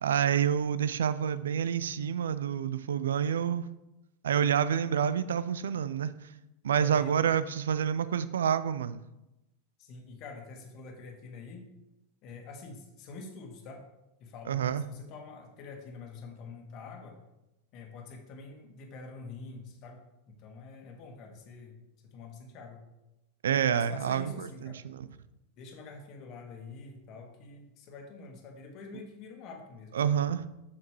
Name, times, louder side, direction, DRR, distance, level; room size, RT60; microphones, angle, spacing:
voice 1, 0.0-3.7 4.2-6.1 6.6-9.0 14.5-14.8 23.4-25.1 29.9-30.4, right 8 dB, 85° right, 0.4 m, -28 dB
voice 2, 6.8-7.1 9.8-11.7 12.2-13.8 14.2-17.2 17.7-20.0 20.4-21.8 22.0-22.8 23.7-24.8 25.6-30.2, left 4 dB, 50° left, 1.6 m, -46 dB
7.7 x 5.9 x 3.2 m
hypercardioid pair, 110°, 0 cm